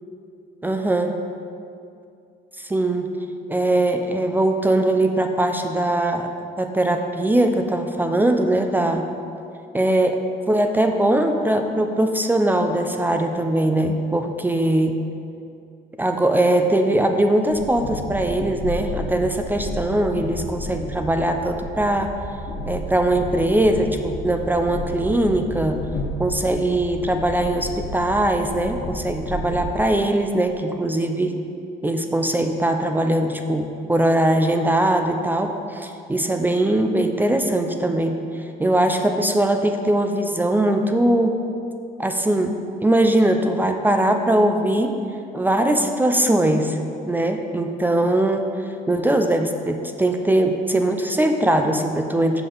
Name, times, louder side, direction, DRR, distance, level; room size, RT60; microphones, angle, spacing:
voice 1, 0.6-1.1 2.6-3.1 3.5-6.3 6.6-9.0 9.7-10.2 10.5-14.9 16.0-22.1 22.7-25.8 26.2-31.3 31.8-41.3 42.0-42.5 42.8-45.0 45.3-46.8 47.1-48.5 48.9-52.4, right 1 dB, 10° right, 5 dB, 0.3 m, -21 dB
Train, 17.5-29.7, left 1 dB, 65° left, 0.9 m, -32 dB
5.8 x 5.0 x 3.9 m, 2.5 s
cardioid pair, 110°, 17 cm